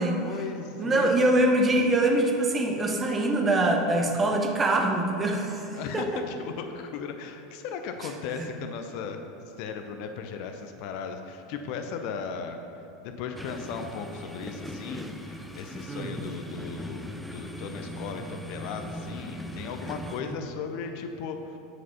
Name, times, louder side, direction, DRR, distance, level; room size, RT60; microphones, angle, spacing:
voice 1, 0.2-1.2 5.7-9.2 9.6-12.6 13.2-21.6, left 6 dB, 50° left, 6 dB, 0.5 m, -37 dB
voice 2, 0.8-5.7 5.9-6.2 8.4-8.5 15.9-16.1 20.2-20.3, right 1 dB, 20° right, 2 dB, 0.9 m, -24 dB
sound 1, 13.4-20.2, equal, ahead, 0.6 m, -39 dB
7.9 x 4.9 x 5.7 m, 2.7 s
figure-of-eight pair, 80°, 0 cm